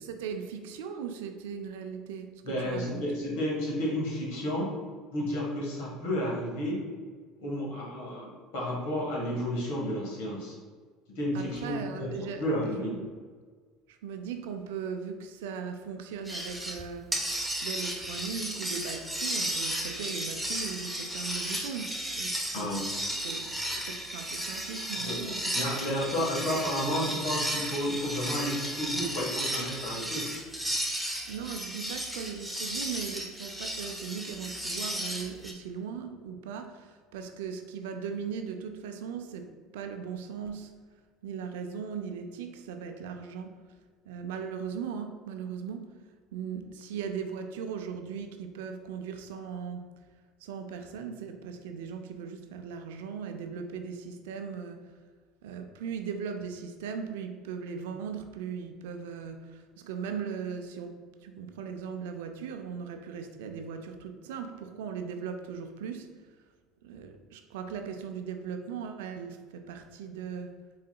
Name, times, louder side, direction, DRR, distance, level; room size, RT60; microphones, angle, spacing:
voice 1, 0.0-2.3 2.6-3.1 11.3-13.1 13.9-17.2 17.6-22.7 23.2-25.7 26.4-26.6 31.2-39.5 39.7-40.8 41.2-43.6 44.1-46.0 46.3-49.9 50.4-54.9 55.4-66.1 66.8-70.6, right 6 dB, 80° right, 6 dB, 0.4 m, -38 dB
voice 2, 2.4-4.7 5.1-6.8 7.4-10.6 11.1-13.0 22.5-22.8 25.0-25.2 25.5-30.3, equal, 75° left, -4 dB, 1.4 m, -31 dB
sound 1, 16.2-16.8 17.1-35.5, right 1 dB, ahead, 0.7 m, -34 dB
4.0 x 3.7 x 2.3 m, 1.6 s
hypercardioid pair, 85°, 0 cm